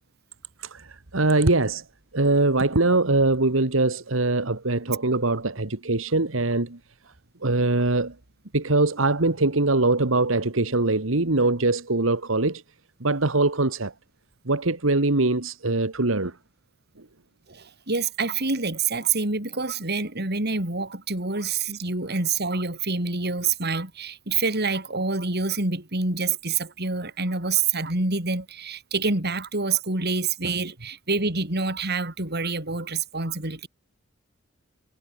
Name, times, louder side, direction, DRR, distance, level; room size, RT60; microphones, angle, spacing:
voice 1, 0.6-1.9 2.1-6.8 7.4-8.1 8.5-12.6 13.0-13.9 14.5-16.3, right 2 dB, 75° right, 1.8 m, -22 dB
voice 2, 17.5-33.7, right 4 dB, 55° right, 5.0 m, -27 dB
head